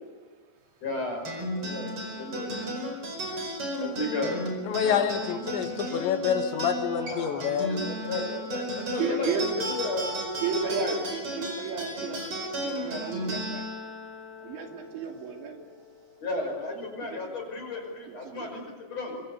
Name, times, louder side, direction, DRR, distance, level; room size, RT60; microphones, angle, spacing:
voice 1, 0.8-1.3 1.5-2.7 3.8-4.4 4.8-5.6 6.9-9.3 9.6-10.1 10.6-11.0 16.2-19.2, left 2 dB, 35° left, 2 dB, 6.5 m, -34 dB
sound 1, 1.2-16.0, equal, 30° right, 5.5 m, -34 dB
voice 2, 4.7-7.8, left 8 dB, 70° left, 7 dB, 3.7 m, -27 dB
voice 3, 9.0-9.5 10.4-13.7 14.4-15.8 17.0-17.4 18.1-18.5, right 5 dB, 70° right, 2 dB, 5.2 m, -33 dB
24.5 x 24.5 x 8.3 m, 1.4 s
omnidirectional pair, 5.5 m